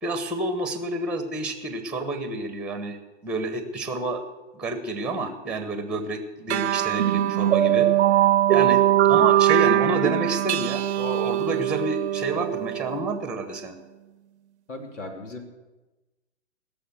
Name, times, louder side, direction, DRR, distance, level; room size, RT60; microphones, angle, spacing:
voice 1, 0.0-4.2 4.5-7.9 8.5-8.8 9.1-13.7, right 2 dB, 5° right, 8 dB, 1.2 m, -29 dB
sound 1, 6.5-13.4, right 12 dB, 65° right, 0.7 m, -21 dB
voice 2, 14.7-15.6, left 2 dB, 85° left, 4 dB, 2.9 m, -38 dB
16.5 x 6.9 x 7.9 m, 1.1 s
hypercardioid pair, 130°, 36 cm